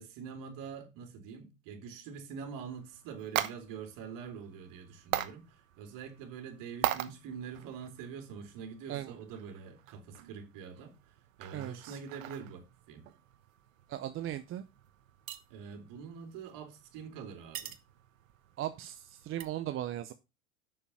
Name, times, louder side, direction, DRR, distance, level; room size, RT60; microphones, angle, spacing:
voice 1, 0.0-13.0 15.5-17.8, right 6 dB, 50° right, 3.2 m, -45 dB
sound 1, 2.7-19.4, right 13 dB, 70° right, 1.2 m, -42 dB
voice 2, 11.5-12.0 13.9-14.6 18.6-20.1, right 12 dB, 30° right, 0.7 m, -37 dB
7.4 x 6.8 x 5.6 m
hypercardioid pair, 90°, 40 cm